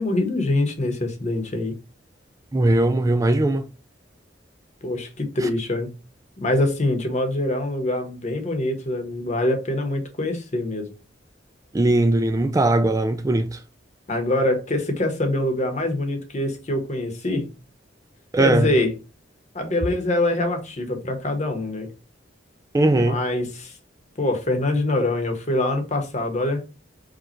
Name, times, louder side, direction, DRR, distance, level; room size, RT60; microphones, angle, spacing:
voice 1, 0.0-1.7 4.8-5.9 6.4-10.9 14.1-17.5 18.4-18.9 19.5-21.9 23.0-23.8 24.2-26.6, left 1 dB, 40° left, 1.1 m, -24 dB
voice 2, 2.5-3.7 5.4-5.5 11.7-13.6 18.3-18.7 22.7-23.2, right 2 dB, 20° right, 0.3 m, -19 dB
5.0 x 2.4 x 4.4 m
head